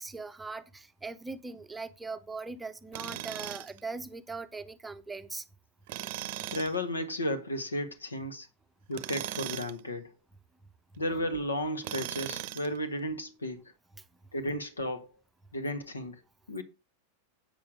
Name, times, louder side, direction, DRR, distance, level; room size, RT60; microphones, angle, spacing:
voice 1, 0.0-5.4 14.0-14.1, right 3 dB, 10° right, 0.8 m, -40 dB
Tools, 2.9-3.8 5.9-6.7 8.9-9.8 11.8-12.8, right 14 dB, 50° right, 0.7 m, -38 dB
voice 2, 6.5-8.5 8.9-10.1 11.0-13.7 14.3-15.1 15.5-16.2 16.5-16.6, left 1 dB, 75° left, 1.7 m, -33 dB
8.5 x 7.3 x 4.9 m
figure-of-eight pair, 90°, 0 cm